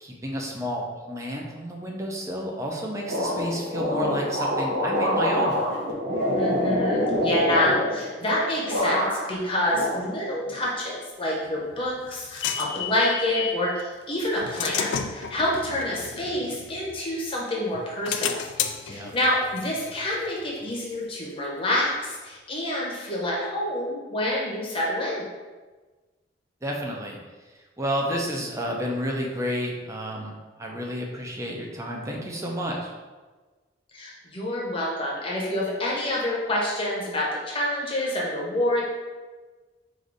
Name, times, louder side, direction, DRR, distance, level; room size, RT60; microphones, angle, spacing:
voice 1, 0.0-5.5 18.9-19.1 26.6-27.2 27.8-32.9, equal, 15° right, -1 dB, 0.6 m, -31 dB
sound 1, 3.1-8.4 8.7-9.4 9.7-10.6, equal, 75° right, 0.9 m, -25 dB
voice 2, 6.3-18.4 18.8-25.2 33.9-38.8, left 1 dB, 30° left, -4 dB, 0.9 m, -27 dB
sound 2, 11.5-13.7 14.2-17.3 17.7-21.2, left 8 dB, 80° left, 0.3 m, -33 dB
4.8 x 2.6 x 3.9 m, 1.3 s
head